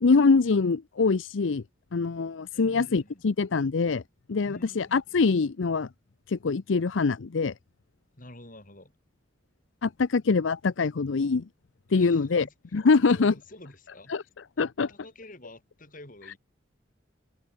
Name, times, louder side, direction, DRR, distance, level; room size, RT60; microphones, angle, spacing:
voice 1, 0.0-1.6 1.9-4.0 4.3-5.9 6.3-7.5 9.8-11.4 11.9-12.4 12.7-13.3 14.1-14.2 14.6-14.9, left 4 dB, 85° left, 0.6 m, -24 dB
voice 2, 2.5-3.2 4.4-5.0 8.1-8.9 11.9-12.5 13.1-14.3 14.6-16.4, left 1 dB, 45° left, 7.3 m, -48 dB
head